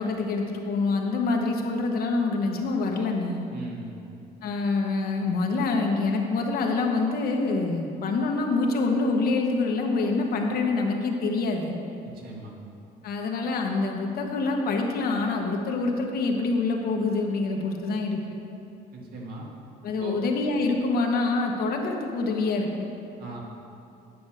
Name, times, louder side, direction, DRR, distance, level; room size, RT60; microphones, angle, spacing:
voice 1, 0.0-3.5 4.4-11.8 13.0-18.4 19.8-22.9, left 3 dB, 65° left, 2 dB, 1.3 m, -26 dB
voice 2, 3.5-4.0 12.2-12.5 18.9-19.5 20.0-20.3 23.2-23.4, right 2 dB, 60° right, -2 dB, 2.1 m, -38 dB
9.5 x 6.1 x 6.4 m, 2.7 s
cardioid pair, 110°, 17 cm